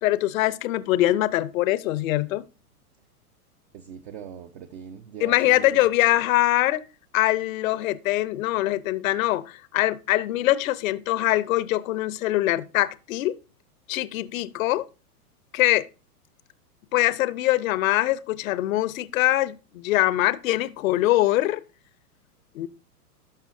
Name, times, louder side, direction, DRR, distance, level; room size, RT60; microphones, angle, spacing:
voice 1, 0.0-2.4 5.2-6.8 7.1-13.4 13.9-14.9 15.5-15.9 16.9-21.6 22.5-22.7, left 16 dB, 60° left, 0.7 m, -23 dB
voice 2, 3.7-5.9, right 8 dB, 45° right, 0.8 m, -41 dB
12.5 x 5.6 x 2.6 m
hypercardioid pair, 120°, 47 cm